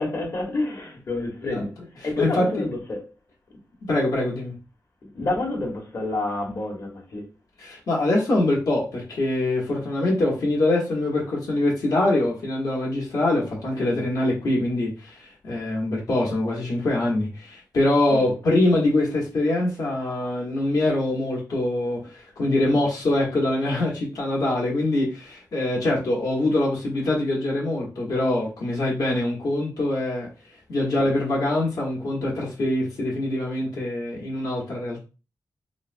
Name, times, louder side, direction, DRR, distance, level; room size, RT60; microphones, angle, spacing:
voice 1, 0.0-1.7 2.0-3.0 5.1-7.2 18.1-18.6 31.0-31.1, left 2 dB, 55° left, 1.2 m, -28 dB
voice 2, 2.2-2.7 3.9-4.5 7.6-30.3 30.7-35.0, left 2 dB, 75° left, 1.2 m, -24 dB
3.9 x 2.1 x 2.5 m
wide cardioid pair, 105°, 7 cm